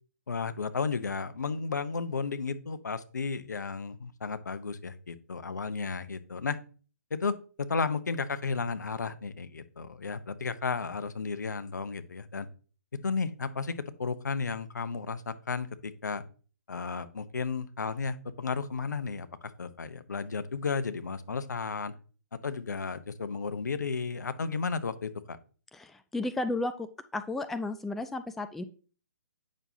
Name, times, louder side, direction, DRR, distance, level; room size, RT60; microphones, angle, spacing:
voice 1, 0.3-6.6 7.1-12.5 13.0-16.2 16.7-21.9 22.4-25.4, left 4 dB, 75° left, 12 dB, 0.8 m, -33 dB
voice 2, 25.7-26.9 27.1-28.6, left 2 dB, ahead, 9 dB, 0.3 m, -33 dB
8.8 x 6.3 x 2.7 m, 0.39 s
figure-of-eight pair, 135°, 10 cm